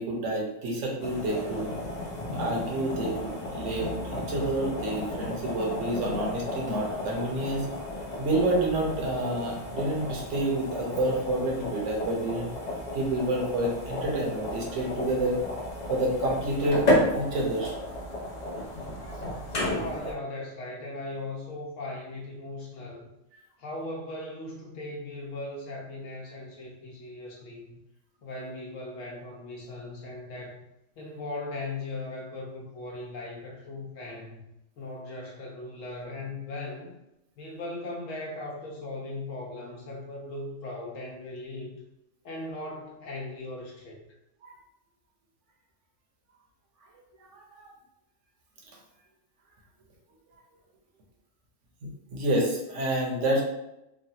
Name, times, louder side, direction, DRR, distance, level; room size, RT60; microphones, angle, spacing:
voice 1, 0.0-1.7 2.3-7.7 8.2-12.5 12.9-15.4 15.9-16.8 17.1-17.7 19.1-19.2 44.4-44.5 47.3-47.7 52.1-53.4, right 1 dB, 70° right, 0 dB, 1.0 m, -28 dB
sound 1, 1.0-20.1, left 1 dB, 45° left, 0.6 m, -33 dB
voice 2, 19.7-23.1 23.6-27.8 28.2-30.6 31.0-34.4 34.8-37.0 37.4-41.7 42.2-44.0, left 2 dB, 75° left, -1 dB, 1.1 m, -38 dB
3.2 x 2.2 x 2.7 m, 0.87 s
omnidirectional pair, 1.3 m